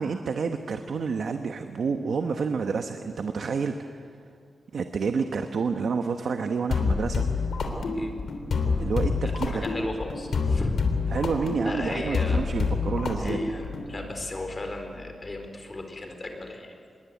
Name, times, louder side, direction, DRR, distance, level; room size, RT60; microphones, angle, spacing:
voice 1, 0.0-4.0 4.7-7.3 8.8-9.6 11.1-13.4, right 5 dB, 70° right, 6 dB, 1.1 m, -29 dB
sound 1, 6.7-13.9, left 4 dB, 70° left, 3.5 m, -27 dB
voice 2, 9.2-10.8 11.6-12.4 13.2-16.7, left 2 dB, 30° left, 4 dB, 4.1 m, -35 dB
26.5 x 22.0 x 9.4 m, 2.3 s
wide cardioid pair, 135°, 0 cm